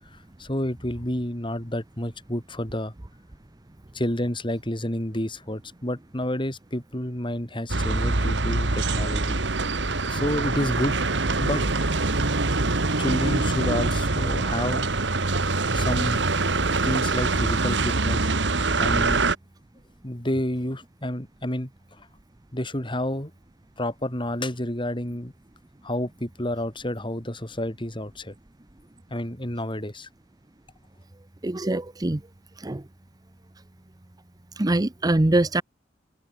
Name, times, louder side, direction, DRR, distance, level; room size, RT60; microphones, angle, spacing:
voice 1, 0.4-2.9 3.9-9.4 10.1-11.0 11.4-11.6 13.0-14.9 15.7-16.3 16.8-18.3 18.8-19.3 20.0-21.7 22.0-22.1 22.5-23.3 23.8-25.3 25.8-28.3 29.1-30.1, left 1 dB, 25° left, 4.3 m, -29 dB
sound 1, 7.7-19.4, right 3 dB, 70° right, 1.9 m, -24 dB
voice 2, 31.4-32.2 32.6-32.8 34.6-35.6, right 1 dB, 20° right, 0.7 m, -23 dB
head